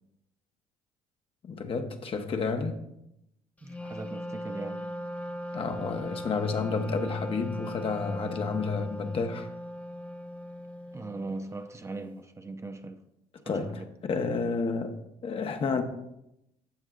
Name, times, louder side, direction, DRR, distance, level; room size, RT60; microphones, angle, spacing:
voice 1, 1.4-2.8 5.5-9.5 13.5-15.8, left 4 dB, 45° left, 1.1 m, -30 dB
Wind instrument woodwind instrument, 3.6-11.5, equal, 10° left, 0.8 m, -39 dB
voice 2, 3.6-5.0 10.9-13.0 13.5-13.8, right 3 dB, 20° right, 0.6 m, -39 dB
13.0 x 7.9 x 2.5 m
cardioid pair, 100°, 14 cm